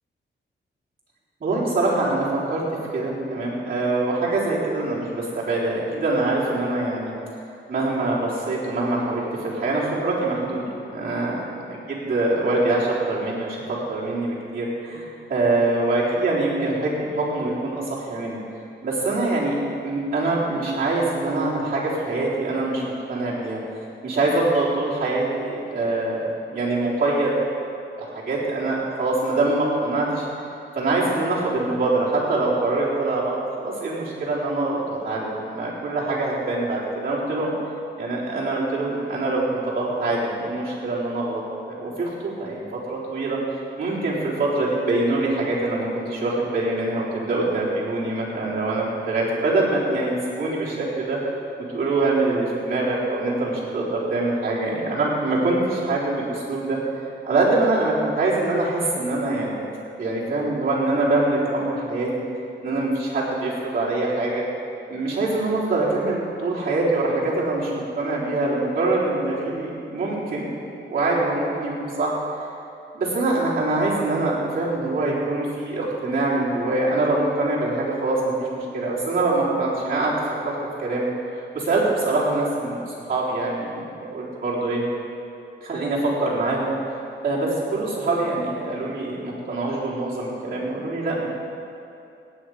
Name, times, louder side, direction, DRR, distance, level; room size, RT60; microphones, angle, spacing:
voice 1, 1.4-2.6 2.9-7.1 7.7-10.6 10.9-11.4 11.9-13.6 13.9-18.4 18.8-23.6 24.0-27.4 28.0-30.3 30.7-37.5 38.0-43.4 43.8-51.2 51.7-59.6 60.0-62.1 62.6-64.4 64.9-70.5 70.8-72.1 72.9-80.1 80.4-80.5 80.8-81.1 81.3-84.8 85.6-86.7 87.2-91.3, right 2 dB, 45° right, -7 dB, 3.8 m, -24 dB
17.5 x 9.3 x 4.9 m, 2.6 s
wide cardioid pair, 125°, 20 cm